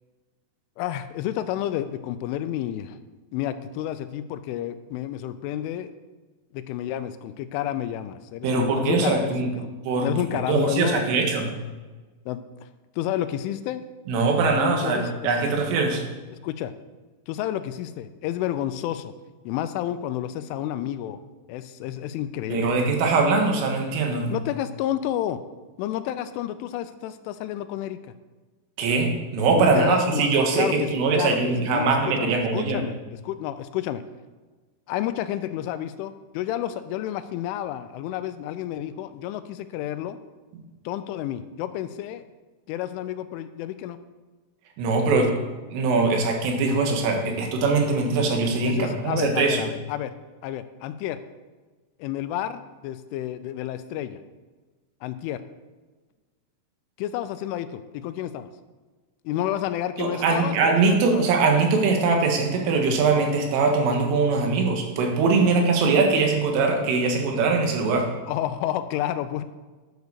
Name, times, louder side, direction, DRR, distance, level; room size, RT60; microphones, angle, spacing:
voice 1, 0.8-3.0 3.3-5.9 6.5-9.7 10.0-11.0 12.3-12.7 13.0-13.8 14.5-15.3 16.4-16.7 17.3-19.1 19.5-21.2 21.5-22.8 24.3-25.4 25.8-28.0 29.6-33.0 33.2-34.0 34.9-40.2 40.9-42.2 42.7-44.0 48.6-50.1 50.4-51.2 52.0-54.2 55.0-55.4 57.0-58.5 59.3-61.3 65.4-65.5 68.3-69.4, left 12 dB, 85° left, 11 dB, 3.0 m, -30 dB
voice 2, 8.4-9.5 9.9-11.5 14.1-16.0 22.5-24.3 28.8-32.8 40.5-40.6 44.8-45.3 45.7-49.7 60.0-68.1, right 4 dB, 80° right, 3 dB, 4.2 m, -22 dB
11.0 x 8.1 x 6.7 m, 1.3 s
omnidirectional pair, 5.7 m